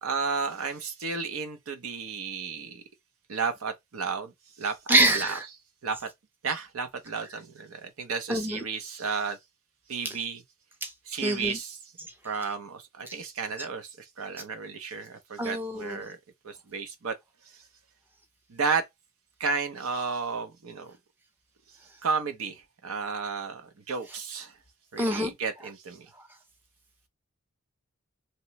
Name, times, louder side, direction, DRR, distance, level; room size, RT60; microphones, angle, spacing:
voice 1, 0.0-2.8 3.3-4.3 4.6-5.6 5.8-6.1 6.4-9.4 9.9-10.4 11.1-11.8 12.2-16.2 16.4-17.2 17.5-17.6 18.5-18.9 19.4-21.0 22.0-24.6 24.9-26.1, right 5 dB, 80° right, 0.7 m, -33 dB
voice 2, 4.9-5.4 8.3-8.6 10.0-10.1 10.8-10.9 11.2-11.6 15.4-16.0 25.0-25.3, right 1 dB, 10° right, 0.5 m, -25 dB
2.9 x 2.1 x 2.8 m
head